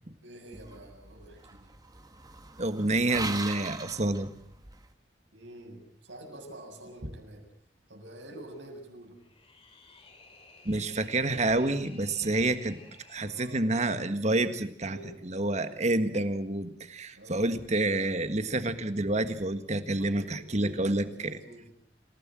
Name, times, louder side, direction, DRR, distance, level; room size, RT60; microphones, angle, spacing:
voice 1, 0.2-1.7 5.3-7.5 7.9-9.2 13.2-13.7 14.8-15.2 15.6-15.9 17.1-17.5 20.0-21.7, right 1 dB, 75° right, 2 dB, 7.2 m, -47 dB
sound 1, 0.5-4.9, right 3 dB, 20° right, 1.7 m, -41 dB
voice 2, 2.6-4.3 10.6-12.8 13.1-15.0 15.2-21.3, right 2 dB, 35° right, 10 dB, 1.7 m, -28 dB
sound 2, 9.2-13.6, left 3 dB, 30° left, 3.1 m, -55 dB
27.5 x 17.0 x 7.6 m, 0.66 s
head